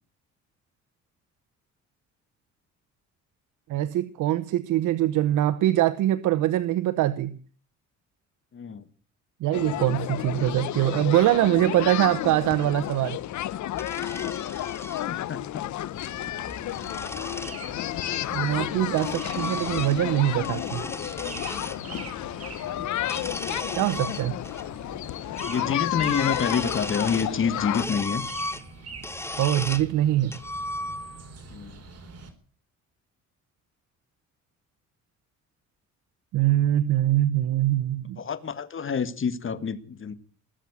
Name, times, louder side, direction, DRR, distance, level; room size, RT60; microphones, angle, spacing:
voice 1, 3.7-7.4 9.4-13.2 18.3-20.8 23.8-24.4 29.4-30.4 36.3-38.2, right 13 dB, 85° right, 0.9 m, -23 dB
voice 2, 8.5-8.8 15.1-15.6 25.5-28.2 31.5-31.8 38.2-40.1, left 6 dB, 40° left, 1.7 m, -28 dB
sound 1, 9.5-27.9, left 13 dB, 70° left, 0.8 m, -31 dB
sound 2, 13.7-15.0 16.3-17.6 18.5-20.1 20.4-21.8 23.0-24.6 24.9-25.0 25.4-25.7 26.0-27.4 27.7-29.9 30.3-31.3, left 2 dB, 10° left, 0.8 m, -36 dB
sound 3, 15.9-32.3, right 4 dB, 55° right, 3.7 m, -45 dB
20.0 x 7.4 x 9.6 m
cardioid pair, 90°, 30 cm